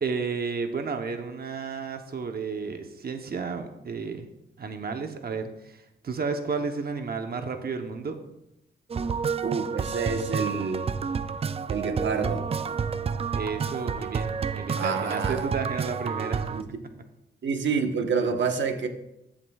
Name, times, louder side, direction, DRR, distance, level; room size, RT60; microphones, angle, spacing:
voice 1, 0.0-4.3 4.6-8.2 13.3-16.6, right 5 dB, 50° right, 6 dB, 0.9 m, -32 dB
sound 1, 8.9-16.6, right 6 dB, 30° right, 0.4 m, -30 dB
voice 2, 9.4-10.9 11.7-12.4 14.8-15.4 16.5-16.7 17.4-18.9, right 5 dB, 70° right, 5 dB, 1.1 m, -28 dB
14.0 x 7.6 x 2.3 m, 0.87 s
cardioid pair, 90°, 20 cm